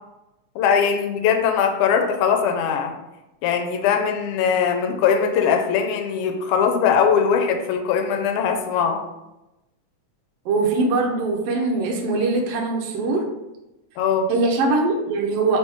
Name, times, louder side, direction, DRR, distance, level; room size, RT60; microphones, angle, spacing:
voice 1, 0.6-3.0 3.4-9.0 14.0-14.3, left 7 dB, 90° left, 4 dB, 2.0 m, -20 dB
voice 2, 10.4-13.2 14.3-15.6, right 3 dB, 75° right, 0 dB, 1.5 m, -22 dB
4.6 x 3.0 x 3.3 m, 0.96 s
omnidirectional pair, 3.4 m